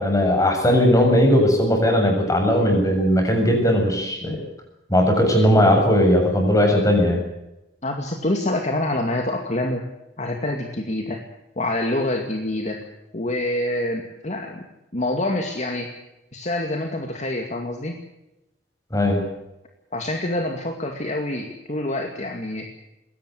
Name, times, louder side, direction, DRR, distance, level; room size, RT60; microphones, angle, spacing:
voice 1, 0.0-4.4 4.9-7.2 18.9-19.2, equal, 20° left, 3 dB, 7.2 m, -18 dB
voice 2, 7.8-9.8 10.2-11.2 11.6-12.8 13.1-14.6 14.9-15.9 16.3-17.9 19.9-22.7, left 1 dB, 40° left, 4 dB, 2.3 m, -26 dB
22.0 x 17.5 x 8.2 m, 0.92 s
head